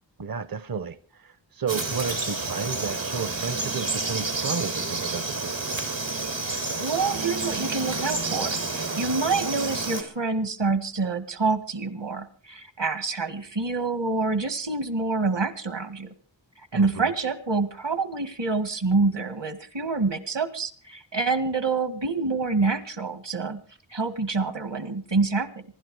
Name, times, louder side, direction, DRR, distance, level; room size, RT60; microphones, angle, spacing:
voice 1, 0.2-5.6 16.7-17.1, right 6 dB, 50° right, 0.8 m, -32 dB
Frog, 1.7-10.0, right 3 dB, 90° right, 3.4 m, -29 dB
voice 2, 6.5-16.1 16.7-23.6 23.9-25.6, right 4 dB, 70° right, 1.8 m, -27 dB
25.5 x 12.0 x 4.7 m
wide cardioid pair, 60°, 44 cm